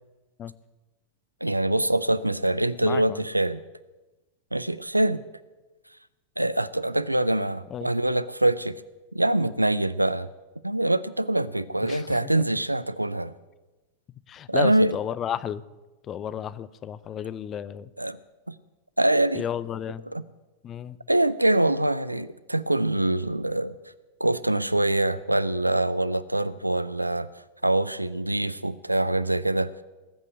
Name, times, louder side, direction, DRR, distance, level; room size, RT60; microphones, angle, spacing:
voice 1, 1.4-3.6 4.5-5.2 6.4-8.8 9.1-10.3 10.6-13.3 14.5-15.0 18.0-18.2 18.5-18.6 19.0-19.4 20.1-20.2 21.1-23.8 24.2-27.3 27.6-29.7, right 1 dB, 85° right, 17 dB, 0.6 m, -24 dB
voice 2, 2.8-3.2 7.7-7.9 11.8-12.4 14.3-15.6 16.1-17.9 19.3-20.0 20.6-21.0, left 9 dB, 30° left, 18 dB, 0.6 m, -33 dB
19.0 x 8.4 x 8.0 m, 1.1 s
figure-of-eight pair, 90°, 0 cm